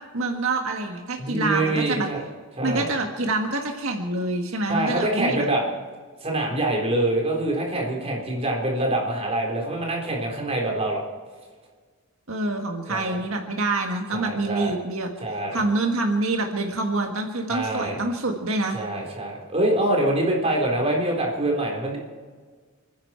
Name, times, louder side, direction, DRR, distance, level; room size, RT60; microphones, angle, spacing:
voice 1, 0.1-2.1 2.6-5.4 12.3-15.1 15.5-18.8, right 2 dB, 85° right, 2 dB, 1.7 m, -26 dB
voice 2, 1.2-2.2 2.6-2.9 4.7-5.6 6.2-11.0 12.9-13.2 14.1-14.7 15.2-15.6 17.5-18.0 18.7-22.0, right 1 dB, 30° right, -1 dB, 3.9 m, -25 dB
29.0 x 10.5 x 4.5 m, 1.5 s
head